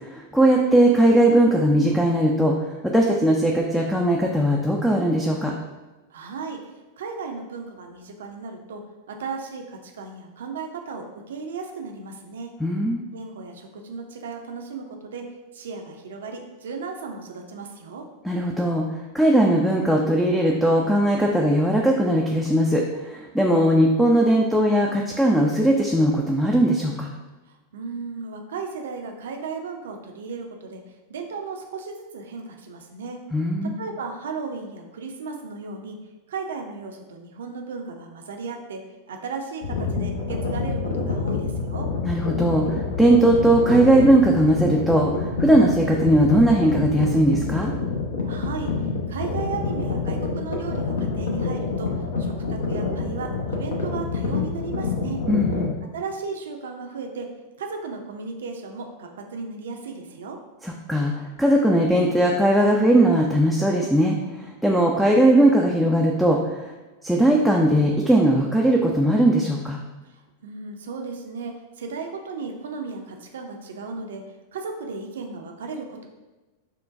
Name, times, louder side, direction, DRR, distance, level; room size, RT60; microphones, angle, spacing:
voice 1, 0.1-2.5 2.8-5.5 12.6-13.0 18.2-18.8 19.1-27.1 33.3-33.8 42.0-47.7 55.3-55.7 60.6-61.1 61.4-64.2 64.6-66.4 67.0-69.8, right 1 dB, ahead, 0 dB, 0.4 m, -19 dB
voice 2, 6.1-6.6 7.0-8.8 9.1-12.5 13.1-15.2 15.5-18.0 27.7-30.8 31.1-33.2 33.6-36.0 36.3-38.8 39.1-41.9 48.3-48.7 49.1-51.9 52.2-55.2 55.9-57.3 57.6-60.4 70.4-74.2 74.5-76.0, right 4 dB, 60° right, 3 dB, 0.5 m, -35 dB
sound 1, 39.6-55.7, left 4 dB, 65° left, 0.7 m, -27 dB
6.3 x 2.2 x 2.5 m, 1.1 s
figure-of-eight pair, 90°, 0 cm